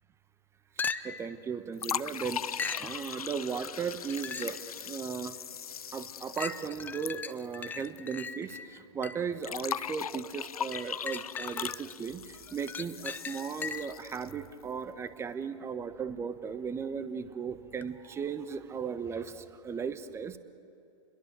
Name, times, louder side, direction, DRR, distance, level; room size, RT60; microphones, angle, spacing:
sound 1, 0.8-1.3 2.6-2.9 3.9-4.7 5.2-5.3 6.4-9.4 10.7-11.9 12.3-14.0 17.8-17.9, left 5 dB, 10° left, 0.5 m, -39 dB
voice 1, 0.8-5.4 5.9-20.4, right 6 dB, 15° right, 13 dB, 1.1 m, -36 dB
sound 2, 1.8-8.0 8.2-8.3 9.4-14.5, left 8 dB, 85° left, 0.5 m, -39 dB
29.0 x 22.0 x 6.8 m, 2.8 s
hypercardioid pair, 120°, 18 cm